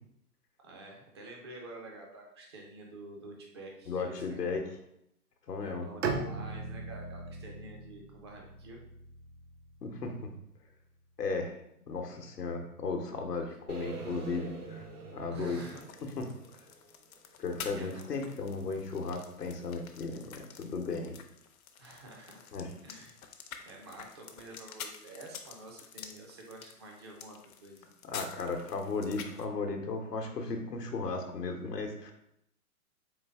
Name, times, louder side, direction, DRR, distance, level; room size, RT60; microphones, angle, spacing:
voice 1, 0.6-4.5 5.6-8.8 15.3-15.8 17.7-18.2 21.8-22.5 22.8-23.1 23.6-27.8, right 2 dB, 20° right, 0 dB, 0.4 m, -49 dB
voice 2, 3.9-4.6 5.5-5.9 9.8-10.3 11.2-11.6 11.9-15.6 16.0-16.2 17.4-21.2 22.5-22.7 28.0-32.1, left 4 dB, 90° left, 3 dB, 0.9 m, -35 dB
Bowed string instrument, 6.0-10.0, right 4 dB, 50° right, 0.7 m, -39 dB
sound 1, 13.7-17.7, right 4 dB, 70° right, 1.1 m, -46 dB
sound 2, 15.5-29.4, left 7 dB, 65° left, 0.7 m, -49 dB
3.9 x 3.3 x 3.4 m, 0.77 s
hypercardioid pair, 125°, 46 cm